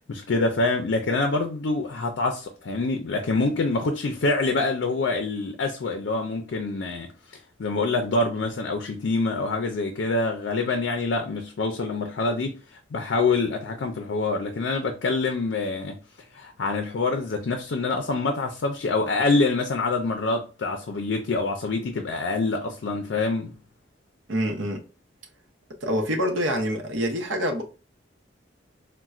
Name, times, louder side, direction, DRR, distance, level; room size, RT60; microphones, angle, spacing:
voice 1, 0.1-16.0 16.3-23.6, left 3 dB, 70° left, 0.4 m, -26 dB
voice 2, 24.3-24.8 25.8-27.6, equal, 85° right, 0.7 m, -26 dB
4.1 x 2.1 x 2.3 m
head